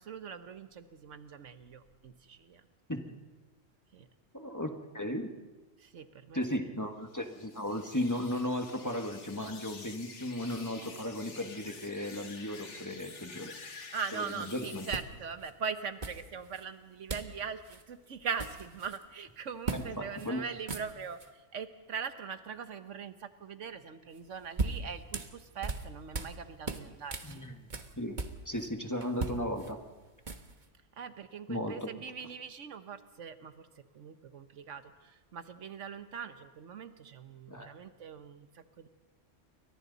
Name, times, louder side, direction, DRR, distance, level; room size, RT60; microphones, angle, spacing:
voice 1, 0.0-2.7 3.9-4.1 5.8-6.4 13.9-27.5 31.0-33.7 33.9-38.9, right 6 dB, 85° right, 10 dB, 1.4 m, -41 dB
voice 2, 4.3-5.3 6.3-13.5 14.1-14.9 19.7-20.4 27.2-27.7 28.0-29.8 31.5-31.9 37.5-37.7, left 1 dB, 15° left, 4 dB, 1.6 m, -36 dB
sound 1, 7.1-15.0, left 4 dB, 75° left, 2.0 m, -49 dB
sound 2, 14.2-14.4 14.9-15.5 16.0-16.6 17.1-17.4 17.6-17.8 18.1-19.0 19.6-19.9 20.2-20.3 20.6-21.3 24.1-26.4 26.6-28.7 29.0-30.7, right 3 dB, 40° right, 1.4 m, -38 dB
29.0 x 24.0 x 4.1 m, 1.2 s
omnidirectional pair, 1.2 m